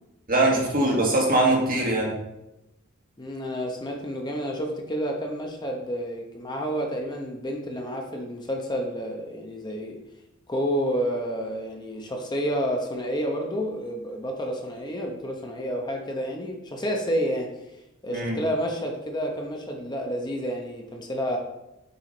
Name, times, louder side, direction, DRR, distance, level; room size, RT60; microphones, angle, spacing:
voice 1, 0.3-2.2 18.1-18.4, right 2 dB, 45° right, -1 dB, 1.6 m, -22 dB
voice 2, 3.2-10.0 10.5-17.5 18.0-21.4, equal, 20° left, 1 dB, 0.8 m, -30 dB
6.9 x 4.9 x 3.9 m, 0.91 s
head